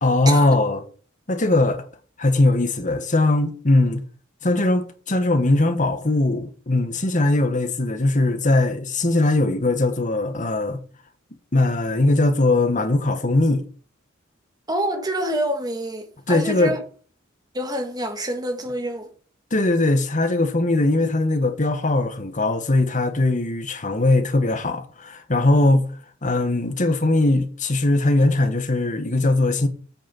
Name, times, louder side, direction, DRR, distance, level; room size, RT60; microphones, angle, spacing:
voice 1, 0.0-0.8 1.3-1.8 2.2-4.0 4.4-10.8 11.5-13.6 16.3-16.7 19.5-25.9 26.2-29.7, left 2 dB, 40° left, 1.6 m, -20 dB
voice 2, 14.7-16.8 17.5-19.1, right 1 dB, 20° right, 2.0 m, -27 dB
8.9 x 6.6 x 7.2 m
head